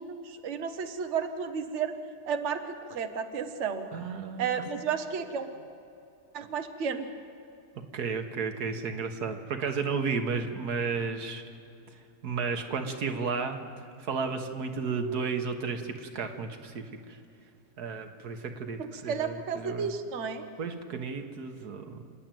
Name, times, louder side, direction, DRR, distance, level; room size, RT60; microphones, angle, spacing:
voice 1, 0.0-2.0 2.3-3.9 4.4-5.5 6.3-7.1 18.8-20.4, right 6 dB, 50° right, 7 dB, 1.3 m, -32 dB
voice 2, 3.9-4.6 7.9-11.4 12.2-13.6 14.0-17.2 17.8-19.9 20.6-22.1, right 5 dB, 80° right, 6 dB, 1.8 m, -33 dB
28.5 x 10.5 x 9.2 m, 2.7 s
omnidirectional pair, 1.6 m